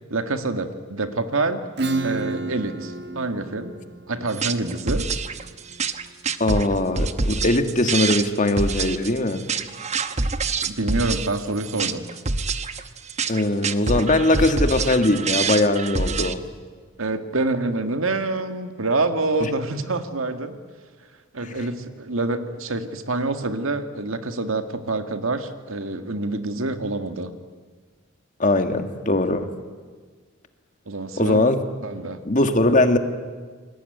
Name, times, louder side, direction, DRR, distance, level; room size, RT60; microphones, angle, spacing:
voice 1, 0.1-1.6 2.0-3.7 4.1-5.1 10.6-12.0 17.0-20.6 21.3-27.3 30.9-31.4 31.8-32.2, right 2 dB, 70° right, 8 dB, 1.9 m, -26 dB
Acoustic guitar / Strum, 1.8-7.1, right 2 dB, 55° right, 1.4 m, -32 dB
sound 1, 4.3-16.3, right 4 dB, 30° right, 1.0 m, -26 dB
voice 2, 6.4-9.4 13.3-16.4 19.4-19.5 21.4-21.6 28.4-29.5 31.2-31.6 32.3-33.0, left 2 dB, 35° left, 8 dB, 1.7 m, -20 dB
29.0 x 22.0 x 9.3 m, 1.5 s
head